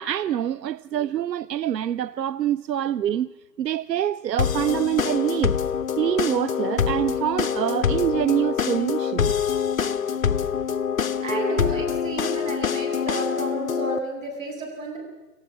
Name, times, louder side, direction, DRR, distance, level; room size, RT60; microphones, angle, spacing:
voice 1, 0.0-3.3 3.6-5.6 6.0-9.3, right 11 dB, 85° right, 0.6 m, -25 dB
sound 1, 4.4-14.0, left 7 dB, 55° left, 0.7 m, -25 dB
voice 2, 11.2-15.0, right 2 dB, 50° right, 7.6 m, -31 dB
27.0 x 15.5 x 7.4 m
hypercardioid pair, 165°, 49 cm